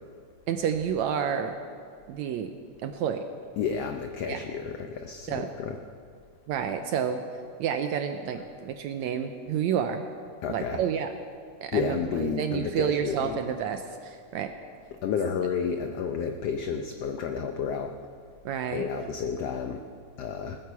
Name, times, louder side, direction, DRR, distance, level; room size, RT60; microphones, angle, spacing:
voice 1, 0.5-1.5 2.1-2.5 2.8-3.2 4.3-4.4 5.3-5.5 6.5-7.2 7.6-10.0 10.5-11.1 11.6-14.5 18.5-18.9, right 8 dB, 75° right, 7 dB, 1.8 m, -29 dB
voice 2, 3.6-5.8 10.4-10.8 11.7-13.4 15.0-17.9 18.7-19.8 20.2-20.6, left 6 dB, 80° left, 5 dB, 1.4 m, -31 dB
20.0 x 9.6 x 7.0 m, 2.1 s
omnidirectional pair, 3.8 m